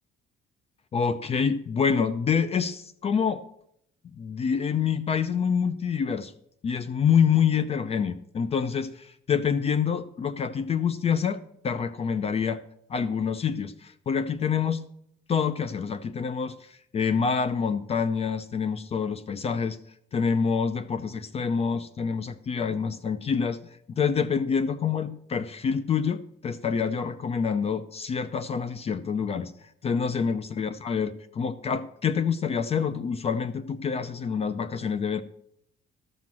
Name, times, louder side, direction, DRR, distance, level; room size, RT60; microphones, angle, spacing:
voice 1, 0.9-3.4 4.2-6.3 6.6-12.6 12.9-14.9 15.3-19.8 20.1-23.6 24.0-35.2, left 6 dB, 35° left, 14 dB, 0.6 m, -27 dB
13.5 x 6.1 x 7.4 m, 0.73 s
cardioid pair, 110°, 17 cm